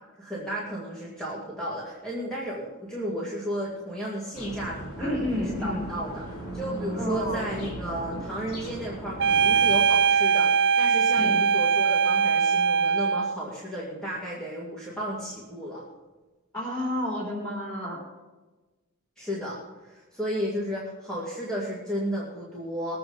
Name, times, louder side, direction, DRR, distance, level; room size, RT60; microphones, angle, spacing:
voice 1, 0.2-5.1 5.4-15.9 19.2-23.0, equal, 5° left, -6 dB, 2.3 m, -33 dB
sound 1, 4.3-9.8, right 1 dB, 85° left, 3.5 m, -37 dB
voice 2, 5.0-5.8 7.0-7.4 11.1-11.3 16.5-18.0, left 1 dB, 20° left, -5 dB, 4.0 m, -30 dB
sound 2, 9.2-13.4, right 6 dB, 55° right, 0.5 m, -21 dB
20.0 x 7.9 x 5.2 m, 1.2 s
head